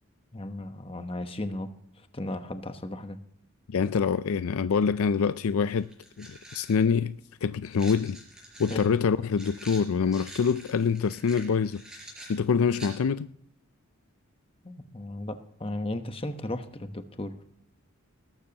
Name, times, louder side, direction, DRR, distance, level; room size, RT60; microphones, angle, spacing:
voice 1, 0.3-1.7 2.1-3.2 8.7-8.9 14.6-17.4, left 1 dB, 25° left, 1.0 m, -35 dB
voice 2, 3.7-5.9 6.2-8.2 8.6-11.8 12.3-13.3, left 6 dB, 80° left, 0.4 m, -25 dB
sound 1, 5.2-5.3 5.8-6.8 7.7-12.9, right 1 dB, 5° right, 4.9 m, -46 dB
20.5 x 12.0 x 2.9 m
head